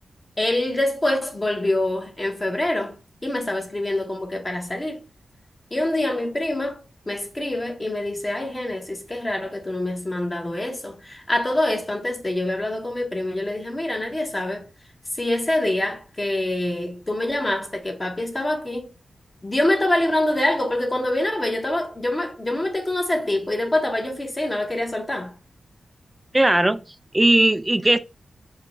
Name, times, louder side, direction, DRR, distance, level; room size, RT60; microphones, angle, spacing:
voice 1, 0.4-3.0 3.2-5.0 5.7-6.8 7.1-14.7 15.2-18.9 19.4-25.3, left 1 dB, 20° left, 0.9 m, -25 dB
voice 2, 26.3-26.8 27.1-28.0, right 1 dB, 15° right, 0.3 m, -17 dB
4.8 x 2.2 x 4.3 m
wide cardioid pair, 105°, 0 cm